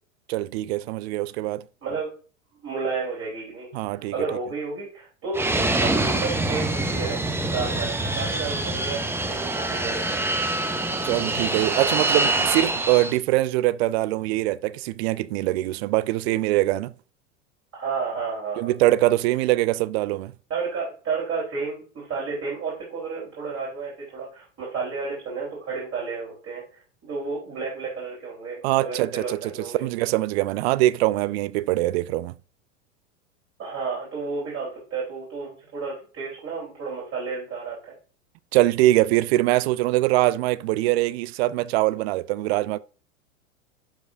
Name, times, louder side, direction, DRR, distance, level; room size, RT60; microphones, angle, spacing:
voice 1, 0.3-1.6 3.7-4.1 11.0-16.9 18.6-20.3 28.6-32.3 38.5-42.8, right 17 dB, 50° right, 0.5 m, -23 dB
voice 2, 2.6-7.2 7.5-9.0 9.3-10.2 17.7-18.7 20.5-26.6 27.0-29.8 33.6-38.0, right 4 dB, 35° right, 3.6 m, -31 dB
Fixed-wing aircraft airplane, 5.3-13.2, right 2 dB, 5° right, 0.6 m, -25 dB
11.5 x 4.9 x 2.5 m
figure-of-eight pair, 90°, 41 cm